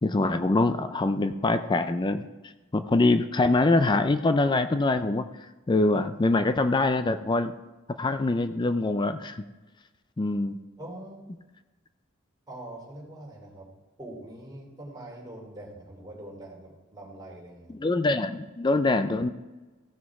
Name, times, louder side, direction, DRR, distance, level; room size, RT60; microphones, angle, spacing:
voice 1, 0.0-2.2 2.7-5.3 5.7-7.5 8.0-9.4 10.2-10.6 17.7-19.3, left 2 dB, 20° left, 10 dB, 0.4 m, -24 dB
voice 2, 10.8-11.3 12.5-13.7 14.0-17.8, right 1 dB, 20° right, -3 dB, 2.9 m, -43 dB
15.5 x 6.1 x 4.7 m, 1.2 s
head